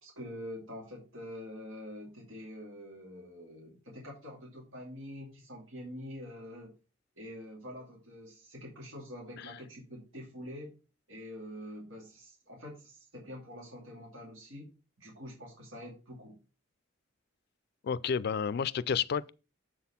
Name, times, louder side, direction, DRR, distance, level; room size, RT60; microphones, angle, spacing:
voice 1, 0.0-6.7 7.2-10.7 11.1-14.7 15.0-16.4, left 1 dB, 80° right, 2.5 m, -46 dB
voice 2, 17.8-19.3, left 7 dB, 55° left, 0.3 m, -31 dB
7.5 x 4.2 x 5.6 m
head